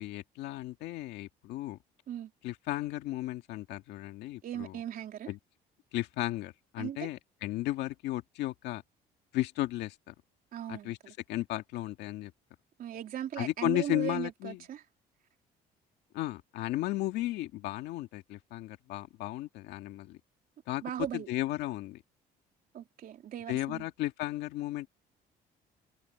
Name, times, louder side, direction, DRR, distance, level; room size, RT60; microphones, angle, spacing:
voice 1, 0.0-1.8 2.4-4.7 5.3-5.4 5.9-8.8 9.3-10.1 10.7-11.0 11.3-12.3 13.4-14.6 16.1-20.2 20.7-20.8 21.1-22.0 23.5-24.9, left 16 dB, 85° left, 2.0 m, -34 dB
voice 2, 4.4-5.3 6.8-7.1 10.5-11.1 12.8-14.8 20.8-21.3 22.7-23.9, right 10 dB, 60° right, 3.5 m, -38 dB
cardioid pair, 110°, 17 cm